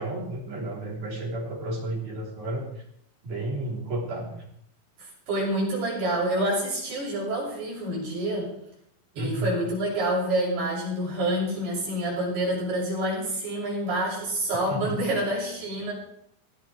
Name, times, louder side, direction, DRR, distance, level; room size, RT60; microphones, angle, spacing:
voice 1, 0.0-2.8 3.2-4.4 9.1-9.6 14.7-15.0, right 1 dB, 75° right, -6 dB, 5.6 m, -32 dB
voice 2, 5.0-8.5 9.2-15.9, right 1 dB, 90° right, -4 dB, 9.2 m, -27 dB
20.0 x 17.5 x 3.4 m, 0.75 s
omnidirectional pair, 4.4 m